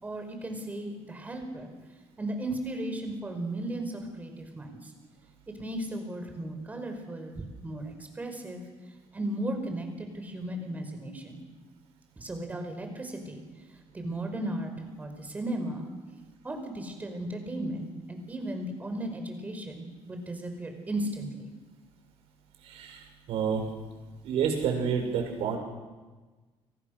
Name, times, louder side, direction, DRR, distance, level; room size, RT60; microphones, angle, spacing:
voice 1, 0.0-1.7 2.2-4.9 5.6-8.6 9.1-11.4 12.1-13.4 13.9-14.7 15.0-15.9 16.4-21.5, right 1 dB, 15° right, 5 dB, 5.1 m, -35 dB
voice 2, 22.6-23.6 24.2-25.6, right 7 dB, 75° right, 3 dB, 7.1 m, -29 dB
30.0 x 25.0 x 6.6 m, 1.3 s
cardioid pair, 155°, 10 cm